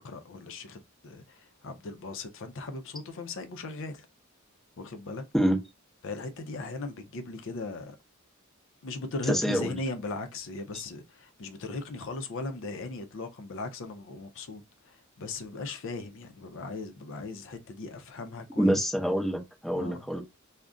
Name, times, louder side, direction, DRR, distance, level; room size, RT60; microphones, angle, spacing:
voice 1, 0.0-4.1 4.8-5.2 6.0-8.0 8.8-18.9 19.7-20.1, left 3 dB, 65° left, 0.5 m, -38 dB
voice 2, 9.3-9.7 18.6-20.2, equal, ahead, 0.6 m, -26 dB
2.4 x 2.1 x 3.6 m
head